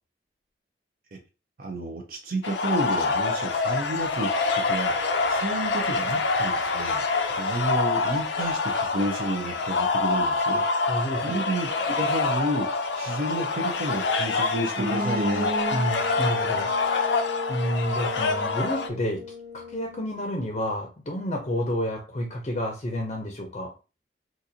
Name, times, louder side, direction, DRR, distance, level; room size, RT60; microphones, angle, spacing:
voice 1, 1.6-12.7 12.9-15.5, right 1 dB, 55° right, 0.6 m, -31 dB
sound 1, 2.4-18.9, left 4 dB, 90° left, 0.5 m, -26 dB
voice 2, 10.9-11.3 15.7-17.0 17.5-19.2 19.5-23.7, equal, 35° left, 0.6 m, -30 dB
sound 2, 14.7-20.6, left 1 dB, 85° right, 1.8 m, -34 dB
4.0 x 2.5 x 2.7 m
head